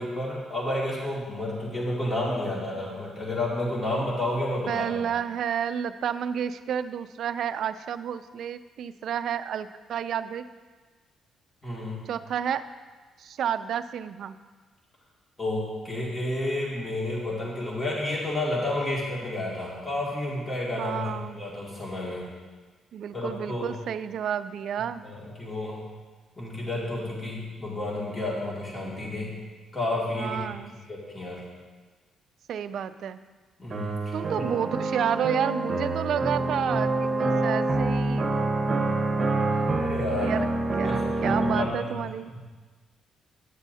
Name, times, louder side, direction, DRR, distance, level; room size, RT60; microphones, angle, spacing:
voice 1, 0.0-5.0 11.6-12.0 15.4-22.2 23.1-23.8 25.0-25.8 26.4-29.4 29.7-30.4 30.9-31.4 33.6-34.5 39.8-40.3 40.8-41.0 41.3-42.0, left 1 dB, 20° left, -5 dB, 2.3 m, -31 dB
voice 2, 4.7-10.5 12.1-12.6 13.2-14.4 20.8-21.4 22.9-25.1 30.2-30.7 32.5-33.2 34.1-38.5 40.1-40.5 40.8-42.3, right 8 dB, 70° right, 12 dB, 0.3 m, -30 dB
sound 1, 33.7-41.7, right 2 dB, 40° right, 1.1 m, -26 dB
10.5 x 7.2 x 2.8 m, 1.4 s
cardioid pair, 90°, 0 cm